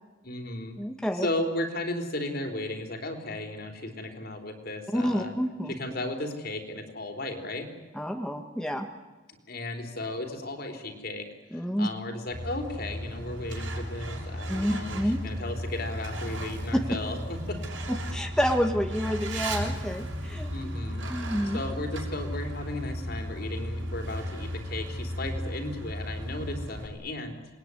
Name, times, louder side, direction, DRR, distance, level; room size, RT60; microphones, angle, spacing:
voice 1, 0.2-0.7 1.2-5.3 5.7-7.7 9.5-11.3 11.5-17.6 20.5-21.1 21.5-27.3, left 1 dB, 55° left, 5 dB, 3.9 m, -35 dB
voice 2, 0.8-1.3 4.9-5.7 7.9-8.9 11.5-11.9 14.5-15.2 17.9-20.5 21.1-21.6, equal, 5° left, 5 dB, 1.3 m, -29 dB
Truck, 12.3-26.9, equal, 85° right, 6.6 m, -35 dB
27.5 x 21.0 x 9.8 m, 1.3 s
head